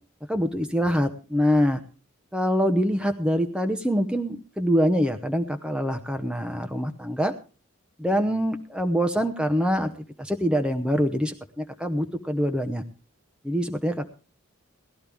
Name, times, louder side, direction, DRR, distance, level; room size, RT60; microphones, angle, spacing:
voice 1, 0.3-1.8 2.3-7.3 8.0-9.9 10.2-12.8 13.4-14.1, equal, 5° right, 6 dB, 0.8 m, -24 dB
18.5 x 13.0 x 3.5 m, 0.36 s
head